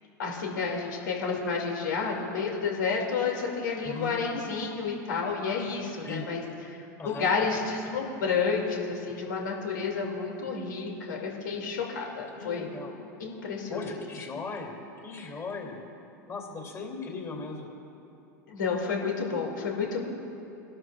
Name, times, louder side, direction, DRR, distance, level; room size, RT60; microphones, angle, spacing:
voice 1, 0.2-12.7 13.2-13.9 18.5-20.0, left 5 dB, 85° left, -1 dB, 2.7 m, -30 dB
voice 2, 3.8-4.2 6.0-6.3 7.0-7.3 12.4-12.9 13.7-14.7 15.0-15.8 16.3-17.7, left 4 dB, 30° left, 1 dB, 3.0 m, -37 dB
24.0 x 12.0 x 2.6 m, 2.9 s
hypercardioid pair, 100°, 10 cm